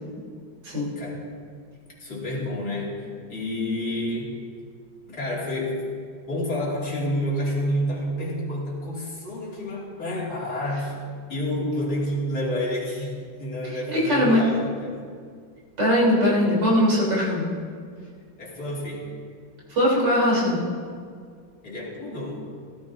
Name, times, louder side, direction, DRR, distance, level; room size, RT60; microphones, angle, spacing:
voice 1, 2.0-4.4 5.1-5.9 6.3-11.0 11.3-15.1 18.4-19.1 21.6-22.5, left 1 dB, 50° left, -6 dB, 3.0 m, -29 dB
voice 2, 13.7-14.4 15.8-17.5 19.7-20.6, left 1 dB, 55° right, -6 dB, 4.2 m, -21 dB
16.5 x 13.5 x 2.7 m, 2.1 s
omnidirectional pair, 2.3 m